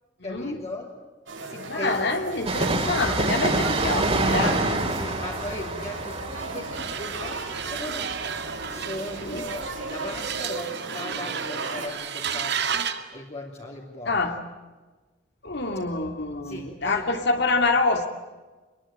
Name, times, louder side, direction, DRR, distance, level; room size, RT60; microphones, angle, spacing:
voice 1, 0.2-1.0 1.5-2.0 4.9-12.8 13.1-14.2 16.4-17.1, left 1 dB, 35° left, -3 dB, 3.4 m, -38 dB
sound 1, 1.3-11.9, right 3 dB, 85° right, 6.1 m, -36 dB
voice 2, 1.7-4.6 9.2-9.4 14.1-14.4 15.4-18.1, left 3 dB, 60° left, 5 dB, 2.5 m, -26 dB
Train, 2.4-9.9 10.1-10.2, right 2 dB, 35° right, 3.7 m, -27 dB
sound 2, 6.7-13.1, right 7 dB, 60° right, 2.0 m, -33 dB
26.0 x 22.5 x 9.2 m, 1.2 s
head